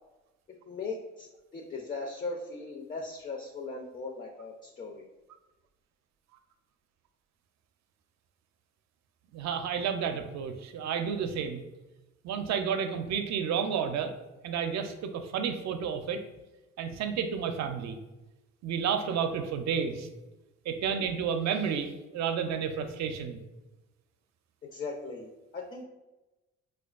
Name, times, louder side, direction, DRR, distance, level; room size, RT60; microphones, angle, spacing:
voice 1, 0.7-1.3 1.5-5.0 19.1-19.2 24.7-25.8, left 3 dB, 30° left, 1 dB, 0.4 m, -38 dB
voice 2, 9.3-11.6 12.2-14.1 14.4-16.2 16.8-18.0 18.6-20.1 20.7-23.4, right 7 dB, 65° right, 7 dB, 0.5 m, -31 dB
4.4 x 2.3 x 2.4 m, 1.0 s
cardioid pair, 90°, 30 cm